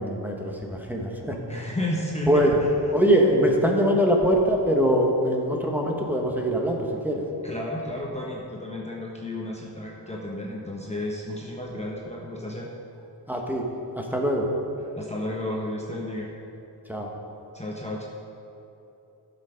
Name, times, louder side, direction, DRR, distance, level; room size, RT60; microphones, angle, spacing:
voice 1, 0.0-1.7 2.3-2.6 2.9-7.2 13.3-13.7 14.0-14.5 16.9-17.1, equal, 5° right, -1 dB, 1.3 m, -23 dB
voice 2, 1.5-2.7 7.4-12.7 14.9-16.3 17.5-18.1, left 1 dB, 15° left, -3 dB, 1.1 m, -32 dB
12.0 x 7.0 x 5.1 m, 2.9 s
wide cardioid pair, 95°, 41 cm